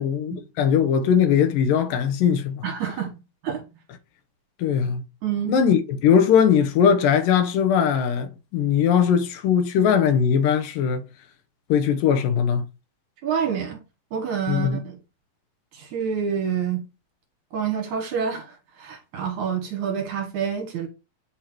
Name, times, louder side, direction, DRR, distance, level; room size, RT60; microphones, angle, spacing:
voice 1, 0.0-2.6 4.6-5.0 5.5-11.0 11.7-12.6 14.5-14.8, left 8 dB, 75° left, 2.5 m, -20 dB
voice 2, 2.6-3.1 3.4-3.6 5.2-5.6 13.2-13.8 14.1-15.0 15.7-16.9 17.5-20.9, right 7 dB, 65° right, 2.7 m, -27 dB
8.7 x 3.0 x 4.5 m
omnidirectional pair, 4.1 m